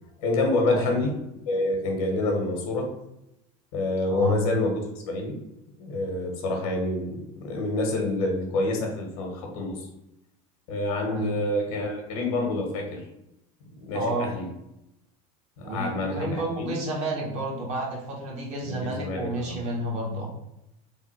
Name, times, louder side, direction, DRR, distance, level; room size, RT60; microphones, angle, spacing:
voice 1, 0.2-1.1 1.5-2.9 3.7-4.8 5.1-5.4 5.8-9.9 10.7-13.0 13.8-14.5 15.6-16.7 18.6-19.6, left 2 dB, 85° left, 2 dB, 1.3 m, -27 dB
voice 2, 4.1-4.4 11.1-11.4 13.9-14.3 15.6-20.3, right 1 dB, 40° right, -2 dB, 1.3 m, -30 dB
3.6 x 2.2 x 4.4 m, 0.86 s
supercardioid pair, 145°, 18 cm